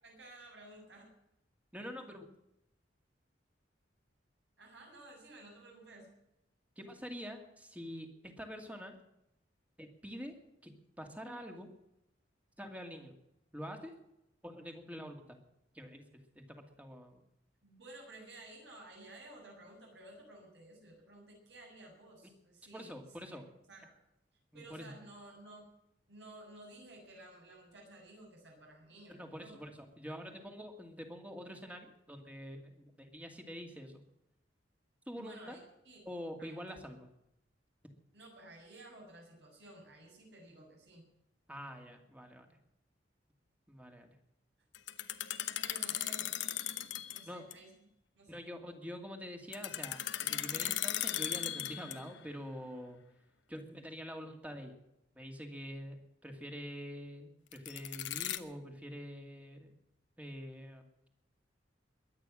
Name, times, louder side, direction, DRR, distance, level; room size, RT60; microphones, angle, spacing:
voice 1, 0.0-1.1 4.6-6.1 17.6-22.9 23.2-23.4 23.7-23.9 24.5-25.7 26.1-29.6 35.2-36.0 36.4-36.6 38.1-41.1 45.6-46.4 47.1-47.7 48.1-48.5, right 2 dB, 70° right, 0 dB, 7.4 m, -54 dB
voice 2, 1.7-2.3 6.8-9.0 9.8-10.4 10.6-11.7 12.6-13.1 13.5-13.9 14.4-15.2 15.7-16.0 16.4-17.2 22.7-23.4 24.5-24.9 29.1-34.0 35.1-35.6 36.1-37.1 41.5-42.5 43.7-44.1 47.3-47.4 48.3-53.0 53.5-54.8 55.2-56.0 56.2-59.7 60.2-61.1, equal, 10° right, 4 dB, 2.3 m, -46 dB
sound 1, 44.7-47.2 47.5-47.6 49.5-52.2 57.5-58.4, left 12 dB, 80° left, 1.1 m, -37 dB
22.5 x 9.5 x 6.2 m, 0.84 s
head